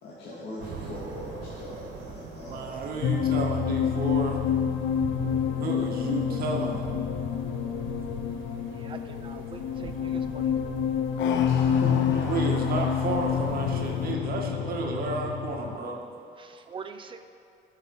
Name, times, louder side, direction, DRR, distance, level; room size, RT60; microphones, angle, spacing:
voice 1, 0.0-2.7 11.5-12.2, left 2 dB, 60° left, -8 dB, 2.4 m, -39 dB
sound 1, 0.6-14.1, right 5 dB, 85° right, 1.9 m, -44 dB
voice 2, 2.5-4.4 4.7-4.8 5.2-6.8 7.6-8.3 9.1-9.4 11.9-16.0, right 3 dB, 50° right, 0 dB, 1.9 m, -33 dB
sound 2, 3.0-15.8, left 8 dB, 75° left, 1.0 m, -28 dB
voice 3, 8.8-10.6 16.4-17.2, right 5 dB, 25° right, 7 dB, 0.7 m, -43 dB
19.5 x 7.6 x 5.0 m, 2.5 s
cardioid pair, 165°, 20 cm